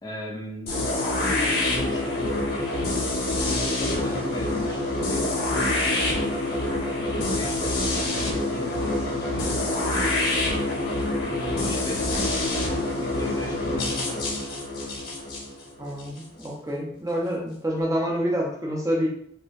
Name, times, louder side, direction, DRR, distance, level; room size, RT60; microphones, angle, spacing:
voice 1, 0.0-3.0 3.5-4.8 5.1-6.2 6.9-10.2 11.2-12.7 13.0-14.3, left 1 dB, 20° left, -2 dB, 0.6 m, -37 dB
sound 1, 0.7-16.5, left 2 dB, 50° left, 1.2 m, -26 dB
voice 2, 15.8-19.1, equal, 15° right, -1 dB, 0.8 m, -27 dB
6.5 x 2.8 x 2.7 m, 0.68 s
head